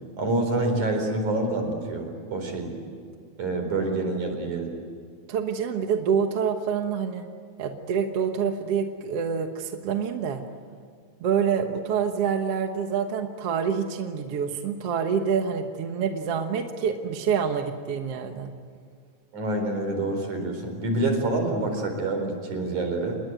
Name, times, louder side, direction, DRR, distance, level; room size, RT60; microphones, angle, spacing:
voice 1, 0.2-2.8 3.4-4.7 19.3-23.2, right 2 dB, 75° right, 5 dB, 5.7 m, -27 dB
voice 2, 5.3-7.3 7.6-10.4 11.2-18.5, right 7 dB, 60° right, 5 dB, 2.1 m, -27 dB
28.0 x 21.0 x 9.3 m, 2.1 s
omnidirectional pair, 3.4 m